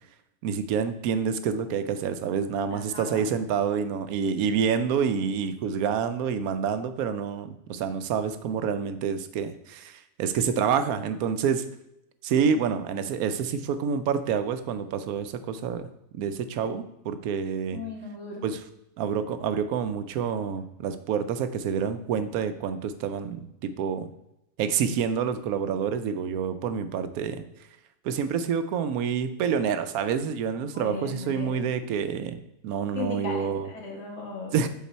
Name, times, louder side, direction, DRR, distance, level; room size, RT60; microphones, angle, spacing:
voice 1, 0.4-11.6 12.2-15.9 16.1-17.8 18.4-18.6 19.0-24.1 24.6-27.4 28.0-33.7 34.5-34.7, right 7 dB, 85° right, 11 dB, 1.1 m, -28 dB
voice 2, 2.7-3.2 17.7-18.4 30.7-31.6 32.9-34.6, left 3 dB, 55° left, 0 dB, 1.6 m, -36 dB
7.2 x 4.0 x 4.2 m, 0.85 s
omnidirectional pair, 1.5 m